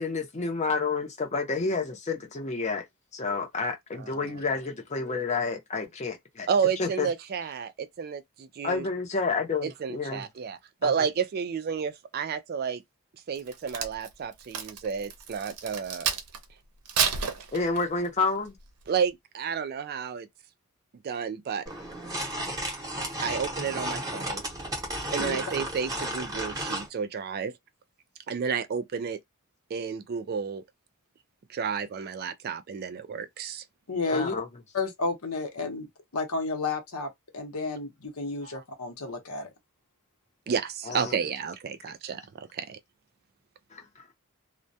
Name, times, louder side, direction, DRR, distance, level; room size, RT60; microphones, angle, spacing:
voice 1, 0.0-2.9 3.1-6.5 6.8-7.1 8.6-10.3 10.8-10.9 17.5-18.6 34.1-34.5 40.8-41.2 43.7-43.9, left 4 dB, 30° left, 0.6 m, -29 dB
voice 2, 6.5-8.8 9.8-12.8 13.3-16.1 18.9-20.3 21.0-21.6 23.2-24.4 25.1-27.5 28.3-29.2 29.7-30.6 31.5-33.6 38.4-38.6 40.5-42.8, right 6 dB, 45° right, 0.3 m, -31 dB
Crack, 13.3-16.4 16.8-18.1 18.6-18.8, right 6 dB, 90° right, 0.6 m, -30 dB
sound 1, 21.7-26.9, right 1 dB, 15° right, 0.8 m, -33 dB
voice 3, 33.9-34.3 34.7-39.5, left 3 dB, 75° left, 0.8 m, -32 dB
2.2 x 2.1 x 2.6 m
head